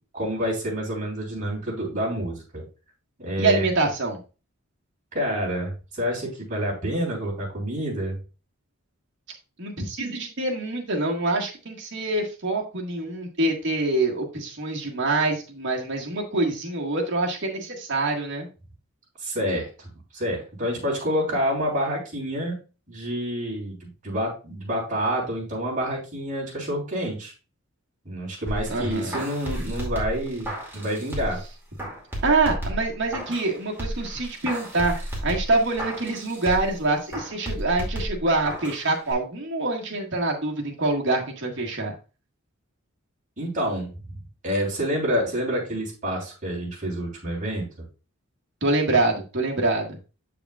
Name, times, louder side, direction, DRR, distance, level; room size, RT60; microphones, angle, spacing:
voice 1, 0.1-2.6 3.2-3.6 5.1-8.2 19.2-22.5 22.9-27.3 28.0-31.4 43.4-43.9 44.4-47.7, equal, 35° right, -4 dB, 3.1 m, -28 dB
voice 2, 3.4-4.2 9.6-18.5 28.7-29.3 32.2-41.9 48.6-50.0, right 2 dB, 55° right, -1 dB, 1.6 m, -25 dB
sound 1, 28.5-31.5 31.8-33.5 33.8-36.8 37.1-38.8 39.1-39.2, equal, 10° right, 2.2 m, -32 dB
7.1 x 6.9 x 2.3 m, 0.32 s
head